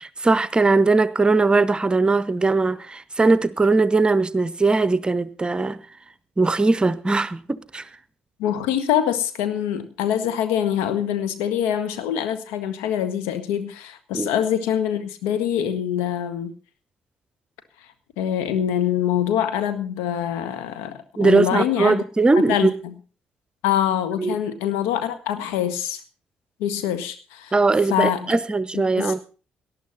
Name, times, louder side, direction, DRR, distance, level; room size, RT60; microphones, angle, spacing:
voice 1, 0.2-5.8 6.4-7.9 14.1-14.3 21.2-22.7 24.2-24.4 27.5-29.2, right 3 dB, 20° right, 0.9 m, -20 dB
voice 2, 8.4-16.5 18.2-22.0 22.4-22.9 23.6-26.0 26.6-27.5 27.9-28.4 29.0-29.2, left 10 dB, 65° left, 1.6 m, -24 dB
19.0 x 11.5 x 4.1 m
figure-of-eight pair, 45°, 4 cm